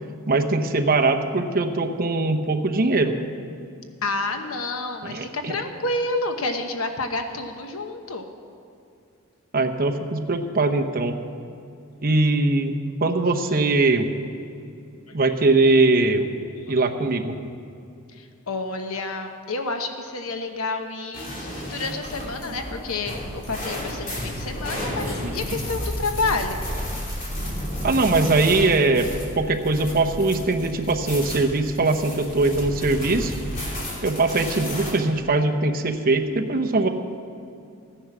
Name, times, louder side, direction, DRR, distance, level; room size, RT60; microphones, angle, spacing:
voice 1, 0.3-3.1 5.0-5.6 9.5-11.1 12.0-14.1 15.1-16.3 16.7-17.4 25.2-25.6 27.8-29.1 29.4-33.3 34.0-36.9, right 2 dB, 45° right, 4 dB, 0.9 m, -21 dB
voice 2, 4.0-8.3 15.1-15.2 16.7-16.8 18.1-26.6, left 3 dB, 70° left, 6 dB, 1.0 m, -29 dB
sound 1, 21.1-34.9, equal, 40° left, 2.9 m, -32 dB
14.5 x 10.0 x 6.1 m, 2.5 s
head